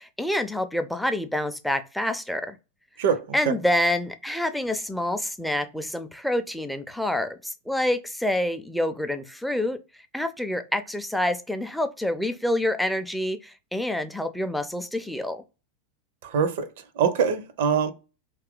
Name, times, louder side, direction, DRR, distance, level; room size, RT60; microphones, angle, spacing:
voice 1, 0.0-2.6 3.3-9.8 10.1-15.4, left 1 dB, ahead, 0.4 m, -27 dB
voice 2, 3.0-3.6 16.2-17.9, right 6 dB, 60° right, 0.5 m, -24 dB
2.7 x 2.4 x 3.6 m
figure-of-eight pair, 90°, 0 cm